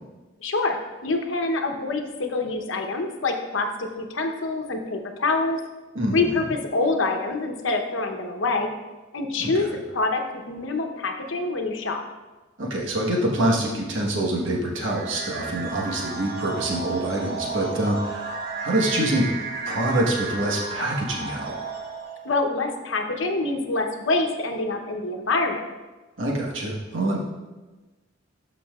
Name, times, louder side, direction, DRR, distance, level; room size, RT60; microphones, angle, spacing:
voice 1, 0.4-5.6 6.1-8.7 9.1-12.0 22.2-25.6, left 3 dB, 85° left, 4 dB, 0.9 m, -26 dB
voice 2, 5.9-6.4 9.4-9.5 12.6-19.3 19.7-21.5 26.2-27.2, right 1 dB, 85° right, -2 dB, 1.3 m, -25 dB
Tilting - vertigo, 14.8-22.4, right 4 dB, 55° right, 1.0 m, -33 dB
12.0 x 5.6 x 2.4 m, 1.2 s
head